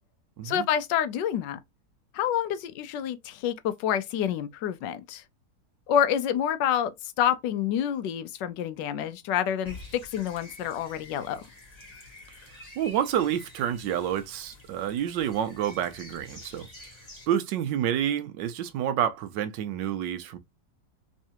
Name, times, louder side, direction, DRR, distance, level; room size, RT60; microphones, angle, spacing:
voice 1, 0.4-1.6 2.1-5.2 5.9-9.8 10.1-11.4, left 9 dB, 80° left, 1.3 m, -28 dB
sound 1, 9.6-17.3, left 2 dB, 15° left, 1.2 m, -48 dB
voice 2, 12.8-16.7 17.3-20.4, right 10 dB, 85° right, 1.3 m, -28 dB
3.6 x 3.2 x 2.8 m
omnidirectional pair, 1.9 m